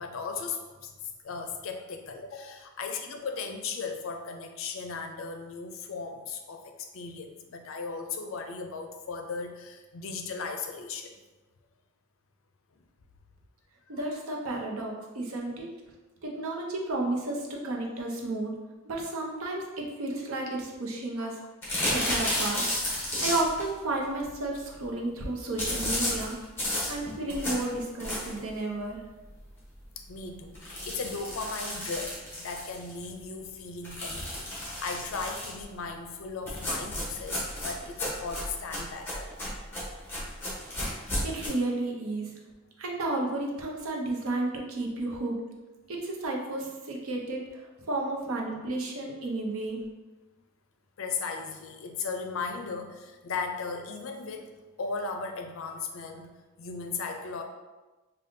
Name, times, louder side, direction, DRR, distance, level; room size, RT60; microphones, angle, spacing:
voice 1, 0.0-11.2 12.8-12.9 13.9-14.0 21.2-21.3 21.6-21.8 30.0-39.3 51.0-56.3 56.6-57.4, left 4 dB, 75° left, 4 dB, 0.4 m, -37 dB
voice 2, 13.9-15.7 16.2-18.6 18.8-21.4 21.9-22.7 23.2-26.4 26.9-29.0 41.2-42.3 42.8-45.4 45.9-49.8, right 2 dB, 85° right, -1 dB, 0.7 m, -32 dB
sound 1, 21.6-23.7 25.6-28.5 29.0-29.1 29.4-29.5 29.8-29.9 30.5-33.0 33.8-35.6 36.5-41.5, left 1 dB, 10° left, 0.9 m, -32 dB
5.1 x 2.3 x 2.6 m, 1.2 s
head